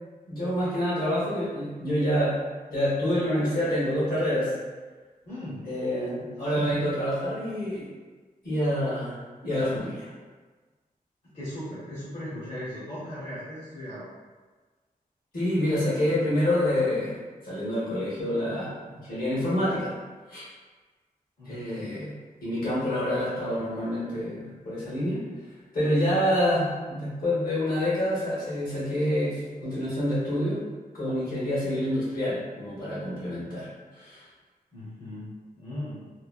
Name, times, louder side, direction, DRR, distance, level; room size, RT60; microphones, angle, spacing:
voice 1, 0.3-2.4 2.7-4.5 5.7-7.9 8.4-9.1 9.4-10.1 15.3-17.2 17.4-18.8 19.1-19.9 20.3-20.4 21.4-22.1 22.4-25.2 25.7-30.6 30.9-33.7 34.0-34.2, equal, 65° left, -9 dB, 1.3 m, -27 dB
voice 2, 5.3-5.6 6.6-6.7 11.2-14.1 21.4-21.9 34.7-35.3 35.6-36.0, left 1 dB, 45° left, -12 dB, 0.8 m, -37 dB
3.1 x 2.0 x 2.5 m, 1.4 s
wide cardioid pair, 175°, 15 cm